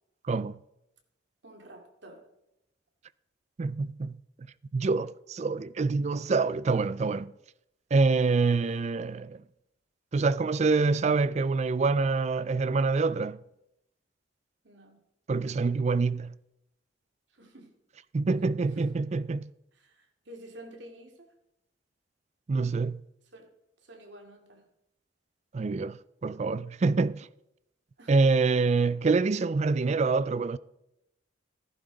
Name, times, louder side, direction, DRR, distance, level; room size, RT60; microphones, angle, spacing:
voice 1, 0.3-0.6 3.6-4.2 4.7-7.3 7.9-9.4 10.1-13.4 15.3-16.3 18.1-19.5 22.5-23.0 25.5-27.3 28.1-30.6, right 4 dB, 35° right, 0.4 m, -26 dB
voice 2, 1.4-2.3 8.6-8.8 14.6-15.0 17.3-17.7 18.7-18.9 19.7-21.3 23.3-23.5 23.8-24.7 28.0-28.2, right 1 dB, 70° right, 2.3 m, -50 dB
14.5 x 11.0 x 4.0 m
head